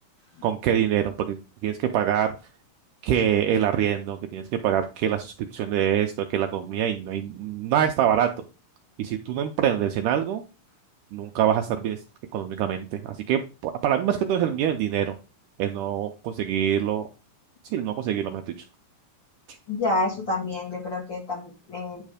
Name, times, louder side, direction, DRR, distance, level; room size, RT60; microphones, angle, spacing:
voice 1, 0.4-1.4 1.6-2.3 3.0-8.3 9.0-10.4 11.1-12.0 12.3-15.2 15.6-17.1 17.7-18.5, right 10 dB, 80° right, 6 dB, 1.9 m, -25 dB
voice 2, 19.7-22.0, left 2 dB, 45° left, -2 dB, 1.7 m, -28 dB
9.4 x 3.2 x 4.9 m, 0.31 s
omnidirectional pair, 4.2 m